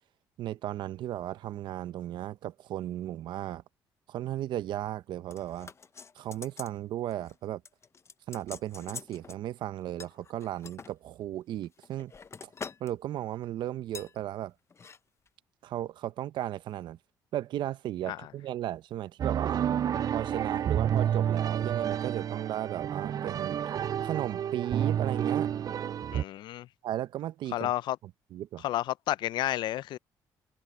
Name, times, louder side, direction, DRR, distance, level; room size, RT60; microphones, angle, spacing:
voice 1, 0.4-3.6 4.1-5.7 6.2-7.6 8.3-12.1 12.8-14.5 15.6-17.0 17.3-19.7 20.1-23.6 24.0-25.5 26.8-27.7 28.3-28.6, right 12 dB, 70° right, 0.9 m, -35 dB
sound 1, 5.3-6.8 7.1-7.4 7.6-9.4 10.0-10.9 11.6-12.9 13.2-13.4 13.9-14.1 14.7-15.0 15.3-15.4, left 5 dB, 35° left, 0.9 m, -45 dB
sound 2, 19.2-26.2, right 9 dB, 50° right, 0.4 m, -30 dB
voice 2, 26.1-26.7 27.5-28.0 28.6-30.0, left 14 dB, 70° left, 0.4 m, -31 dB
supercardioid pair, 70°, 8 cm